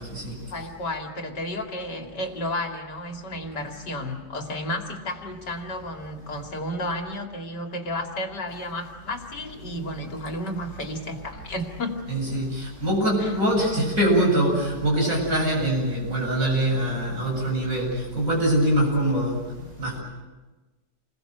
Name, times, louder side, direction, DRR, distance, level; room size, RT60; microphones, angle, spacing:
voice 1, 0.5-12.0 13.2-13.3, left 1 dB, 70° left, 3 dB, 3.1 m, -32 dB
voice 2, 12.1-17.9 18.1-20.0, right 1 dB, 50° right, -2 dB, 8.6 m, -23 dB
28.5 x 21.5 x 8.0 m, 1.2 s
omnidirectional pair, 1.9 m